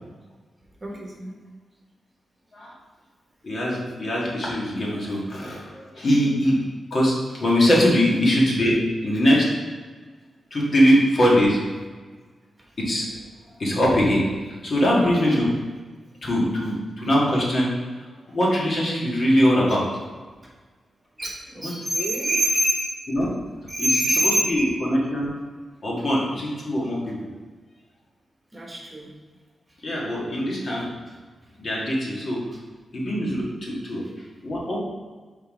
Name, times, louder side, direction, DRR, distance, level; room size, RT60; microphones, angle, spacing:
voice 1, 0.8-1.3 15.1-15.4 21.2-22.9 23.7-24.8 26.0-26.1 28.5-29.0, right 1 dB, 25° right, -2 dB, 1.2 m, -25 dB
voice 2, 3.4-6.6 6.9-9.5 10.5-11.6 12.8-13.1 13.6-14.2 14.6-15.5 16.2-17.7 18.3-19.8 21.6-21.7 23.1-23.3 23.8-25.3 25.8-27.1 29.8-30.8 31.6-32.4 32.9-34.0 34.4-34.8, equal, 45° left, -4 dB, 1.7 m, -22 dB
5.5 x 4.0 x 5.0 m, 1.4 s
wide cardioid pair, 130°, 0 cm